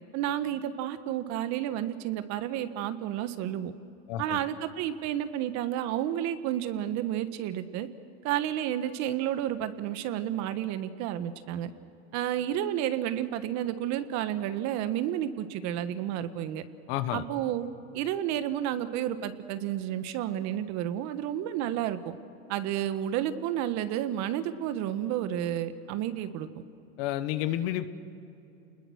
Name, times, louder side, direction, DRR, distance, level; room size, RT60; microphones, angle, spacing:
voice 1, 0.1-3.7 4.2-7.9 8.2-11.7 12.1-16.6 17.1-17.7 17.9-22.0 22.5-26.5, right 11 dB, 60° right, 11 dB, 1.5 m, -31 dB
voice 2, 4.1-4.4 16.9-17.2 27.0-27.9, left 13 dB, 70° left, 11 dB, 1.4 m, -30 dB
29.0 x 20.5 x 6.5 m, 2.8 s
supercardioid pair, 115°, 31 cm